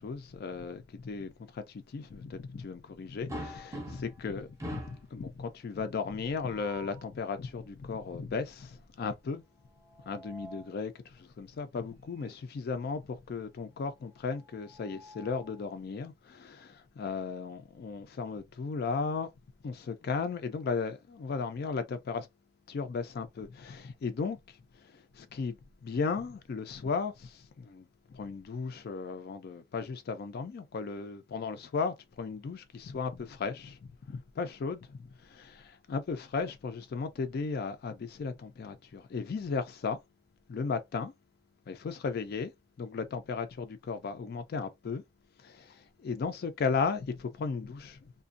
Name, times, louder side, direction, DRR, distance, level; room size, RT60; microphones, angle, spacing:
voice 1, 0.0-9.4 10.0-19.3 19.6-22.3 22.7-40.0 40.5-41.1 41.7-42.5 42.8-45.0 45.4-48.1, left 5 dB, 55° left, 0.3 m, -36 dB
sound 1, 3.3-4.2 4.6-5.1 6.3-7.1 9.7-10.8 12.2-12.4 12.7-12.8 14.4-15.6, right 1 dB, 15° right, 0.6 m, -44 dB
2.4 x 2.2 x 2.5 m
head